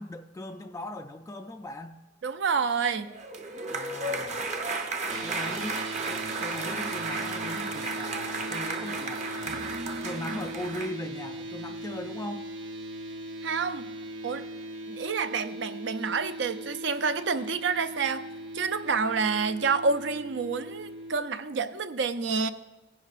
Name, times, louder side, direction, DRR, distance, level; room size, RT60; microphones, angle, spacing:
voice 1, 0.0-2.0 3.7-4.5 5.2-9.6 10.0-12.5, left 1 dB, 15° left, 4 dB, 0.3 m, -39 dB
voice 2, 2.2-3.1 13.4-13.9 14.2-14.5 14.9-18.2 18.5-22.5, right 5 dB, 70° right, 10 dB, 0.6 m, -28 dB
sound 1, 3.0-10.9, right 3 dB, 40° right, 0.8 m, -33 dB
sound 2, 5.1-21.2, right 1 dB, 85° right, 1.0 m, -39 dB
18.5 x 10.5 x 2.5 m, 1.1 s
head